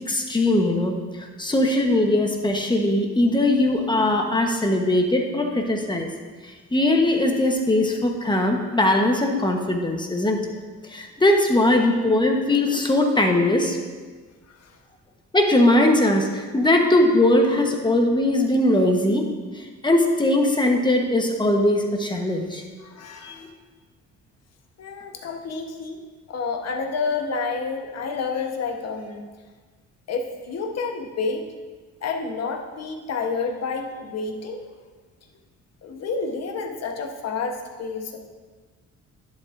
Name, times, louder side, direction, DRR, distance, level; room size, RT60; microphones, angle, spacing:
voice 1, 0.1-6.1 6.7-10.4 10.9-13.8 15.3-19.3 19.5-22.6 23.2-23.5, left 1 dB, 15° left, 2 dB, 1.1 m, -20 dB
voice 2, 22.8-23.5 24.8-26.0 26.3-29.2 30.1-31.5 32.0-34.6 35.8-38.2, left 4 dB, 55° left, 3 dB, 1.1 m, -29 dB
10.5 x 7.8 x 2.6 m, 1.4 s
cardioid pair, 90°, 30 cm